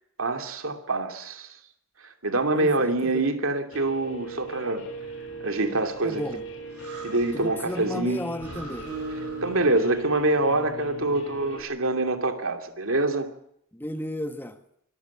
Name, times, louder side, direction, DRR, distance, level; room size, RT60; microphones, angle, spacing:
voice 1, 0.2-1.6 2.2-4.8 5.4-6.2 7.0-8.2 9.4-13.3, right 2 dB, 60° right, 6 dB, 2.8 m, -25 dB
voice 2, 2.5-3.2 6.0-6.4 7.3-8.9 13.7-14.6, left 1 dB, 10° left, 8 dB, 1.4 m, -33 dB
Guitar, 3.7-11.6, right 2 dB, 60° left, 5.7 m, -39 dB
Breathing, 5.5-7.7 8.0-8.1 8.4-10.1, right 2 dB, 85° right, 6.9 m, -46 dB
Acoustic guitar, 8.9-11.6, right 3 dB, 40° right, 6.1 m, -40 dB
25.0 x 14.5 x 8.6 m, 0.71 s
head